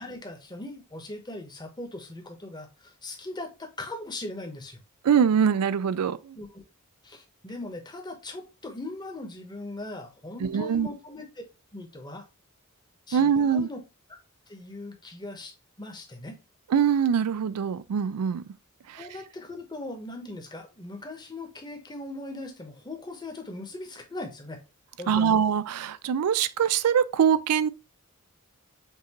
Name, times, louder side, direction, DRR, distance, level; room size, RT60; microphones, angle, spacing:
voice 1, 0.0-4.8 6.3-6.6 7.0-11.2 11.7-12.3 13.1-13.8 14.5-16.4 19.0-24.6 25.0-25.3, left 2 dB, 20° left, 0.9 m, -39 dB
voice 2, 5.0-6.4 10.4-10.9 13.1-13.7 16.7-18.4 18.9-19.1 25.1-27.7, right 7 dB, 85° right, 0.4 m, -23 dB
5.4 x 2.5 x 2.9 m
head